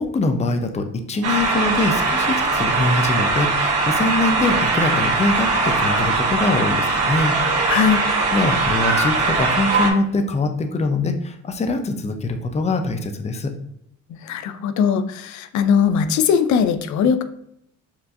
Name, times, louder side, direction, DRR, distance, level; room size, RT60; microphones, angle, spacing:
voice 1, 0.0-7.4 7.9-8.0 8.3-13.5, left 2 dB, 20° left, 7 dB, 0.5 m, -23 dB
sound 1, 1.2-9.9, right 3 dB, 55° right, 1.2 m, -20 dB
voice 2, 7.7-8.0 14.2-17.2, left 7 dB, 70° left, 10 dB, 0.5 m, -19 dB
7.1 x 2.5 x 2.5 m, 0.76 s
cardioid pair, 90°, 30 cm